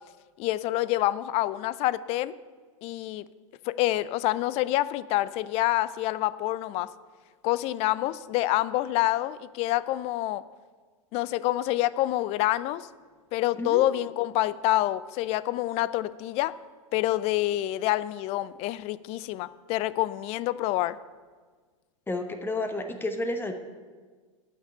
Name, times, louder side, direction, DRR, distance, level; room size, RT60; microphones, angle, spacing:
voice 1, 0.4-2.3 2.8-3.3 3.7-6.9 7.4-10.4 11.1-12.9 13.3-16.5 16.9-21.0, left 15 dB, 35° left, 18 dB, 0.4 m, -27 dB
voice 2, 22.1-23.5, left 2 dB, 10° left, 7 dB, 0.9 m, -31 dB
9.2 x 6.7 x 8.5 m, 1.5 s
figure-of-eight pair, 95°, 17 cm